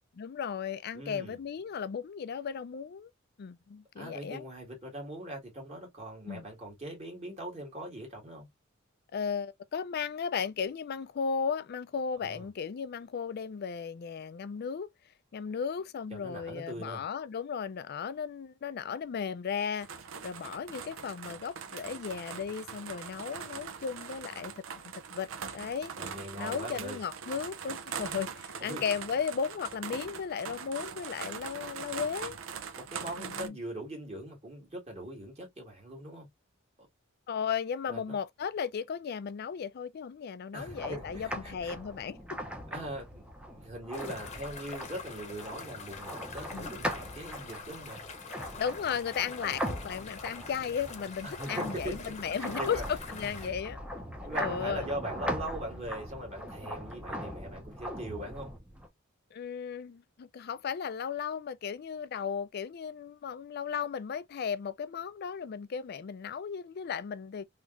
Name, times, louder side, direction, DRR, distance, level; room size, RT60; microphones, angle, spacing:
voice 1, 0.2-3.1 3.4-4.4 6.3-6.4 9.1-14.9 15.3-19.9 20.2-25.9 26.4-32.4 33.2-33.6 37.3-42.2 46.5-46.7 48.6-53.8 54.4-54.9 59.3-67.5, left 6 dB, 50° left, 0.4 m, -35 dB
voice 2, 0.9-1.4 4.0-8.5 12.2-12.5 16.1-17.0 26.0-27.0 28.6-28.8 32.8-36.3 37.9-38.2 40.5-41.7 42.7-48.0 51.2-52.0 52.4-52.8 53.4-53.5 54.2-58.5, right 1 dB, 30° right, 1.8 m, -41 dB
sound 1, 19.8-33.5, right 6 dB, 75° right, 0.5 m, -42 dB
sound 2, 40.6-58.9, equal, 5° right, 0.6 m, -40 dB
sound 3, 43.9-53.5, left 4 dB, 35° left, 0.8 m, -46 dB
3.3 x 2.9 x 2.4 m
head